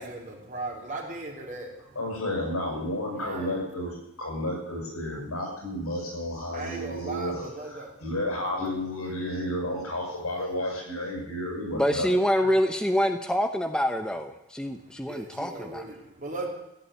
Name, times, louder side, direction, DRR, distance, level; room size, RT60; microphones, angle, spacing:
voice 1, 0.0-2.0 3.2-3.6 6.5-8.0 14.7-14.8 15.0-16.5, right 2 dB, 35° right, 1 dB, 3.3 m, -37 dB
voice 2, 2.0-12.1 12.4-12.5, left 1 dB, 90° left, 0 dB, 7.4 m, -32 dB
voice 3, 11.8-15.8, equal, 5° left, 7 dB, 0.8 m, -26 dB
15.5 x 8.7 x 9.9 m, 0.88 s
head